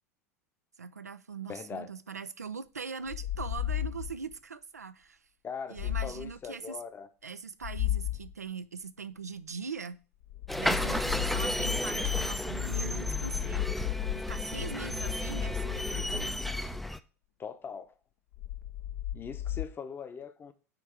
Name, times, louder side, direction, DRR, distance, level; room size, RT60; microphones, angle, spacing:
voice 1, 0.8-5.2 5.7-6.8 7.2-10.0 10.6-13.7 14.1-16.4, right 5 dB, 90° right, 0.4 m, -41 dB
voice 2, 1.5-1.9 5.4-7.1 17.4-17.9 19.1-20.5, left 6 dB, 25° left, 0.8 m, -41 dB
sound 1, 3.1-4.3 5.8-6.4 7.6-8.3 10.2-17.0 18.3-19.7, left 12 dB, 65° left, 0.7 m, -35 dB
sound 2, 10.5-17.0, equal, ahead, 0.5 m, -33 dB
9.2 x 3.4 x 4.7 m
figure-of-eight pair, 80°, 8 cm